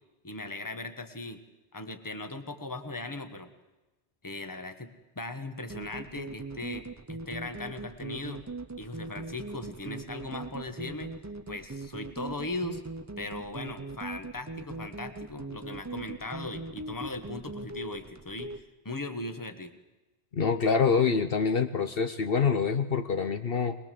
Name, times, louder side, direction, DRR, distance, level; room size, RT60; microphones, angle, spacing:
voice 1, 0.2-1.4 1.7-3.5 4.2-8.4 8.8-11.1 11.5-12.8 13.2-19.7, left 2 dB, 20° left, 8 dB, 1.4 m, -38 dB
sound 1, 5.7-18.6, right 2 dB, 20° right, 0.7 m, -40 dB
voice 2, 20.3-23.8, left 5 dB, 60° left, 8 dB, 1.1 m, -26 dB
21.5 x 21.0 x 7.6 m, 1.1 s
omnidirectional pair, 1.1 m